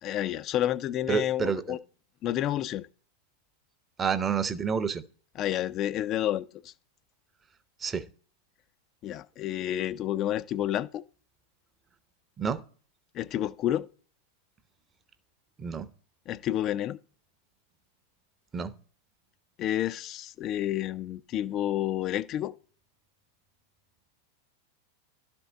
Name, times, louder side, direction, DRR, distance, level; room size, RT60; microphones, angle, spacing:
voice 1, 0.0-1.8 2.2-2.9 5.4-6.7 9.0-11.0 13.1-13.9 16.3-17.0 19.6-22.6, left 12 dB, 35° left, 0.3 m, -30 dB
voice 2, 1.1-1.8 4.0-5.0 7.8-8.1 12.4-12.6 15.6-15.9 18.5-18.7, right 6 dB, 20° right, 0.7 m, -29 dB
12.0 x 4.4 x 5.1 m
figure-of-eight pair, 90°, 0 cm